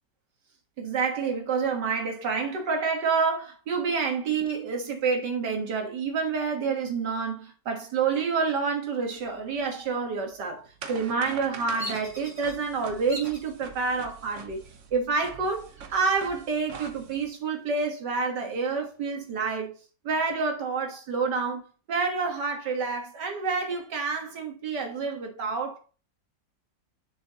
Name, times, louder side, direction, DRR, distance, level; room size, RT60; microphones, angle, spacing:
voice 1, 0.8-14.6 14.9-19.7 20.0-25.8, right 5 dB, 85° right, 2.2 m, -28 dB
sound 1, 9.2-17.3, right 6 dB, 50° right, 1.2 m, -44 dB
Bird vocalization bird call bird song, 11.8-12.5 13.1-13.5 14.1-14.6 15.8-16.5 16.9-17.0 17.4-18.8, equal, 25° right, 3.4 m, -41 dB
7.1 x 6.3 x 3.0 m
omnidirectional pair, 1.8 m